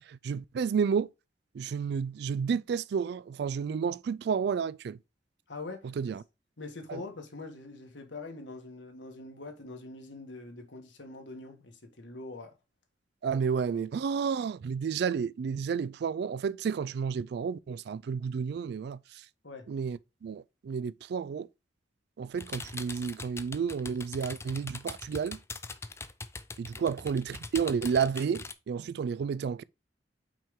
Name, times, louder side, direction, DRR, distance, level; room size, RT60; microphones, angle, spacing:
voice 1, 0.1-1.1 1.5-5.0 6.0-6.2 6.9-7.0 13.2-19.2 19.7-21.5 22.2-25.4 26.6-29.6, right 6 dB, 60° right, 0.3 m, -31 dB
voice 2, 5.5-6.2 6.6-12.5 19.4-19.7 26.8-27.0, left 3 dB, 85° left, 1.5 m, -44 dB
sound 1, 22.3-28.5, left 3 dB, 15° left, 0.4 m, -42 dB
5.9 x 4.5 x 3.6 m
head